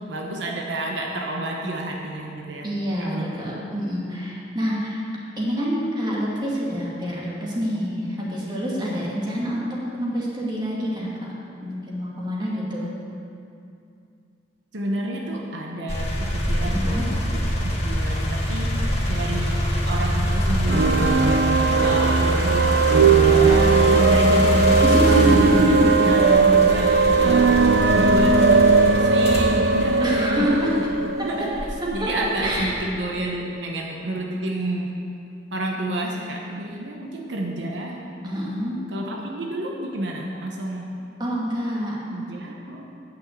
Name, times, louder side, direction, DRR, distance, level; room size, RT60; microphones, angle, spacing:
voice 1, 0.0-2.7 3.0-3.4 14.7-18.8 19.1-21.2 21.7-25.7 26.0-27.5 27.8-30.8 31.1-31.5 31.9-34.9 35.5-38.0 38.9-40.9 42.1-42.8, right 1 dB, 80° right, 0 dB, 1.0 m, -29 dB
voice 2, 2.6-5.0 5.4-11.1 11.6-12.9 16.6-17.1 24.8-26.4 26.7-27.1 27.9-28.0 30.0-30.8 31.2-31.5 31.8-32.1 32.4-32.7 38.2-38.8 39.2-39.3 41.2-41.9, equal, 25° right, -5 dB, 2.1 m, -26 dB
sound 1, 15.9-30.9 31.5-32.7, equal, 35° left, 1.7 m, -24 dB
sound 2, 20.7-32.3, right 4 dB, 65° right, 0.5 m, -18 dB
9.2 x 6.3 x 7.9 m, 2.5 s
head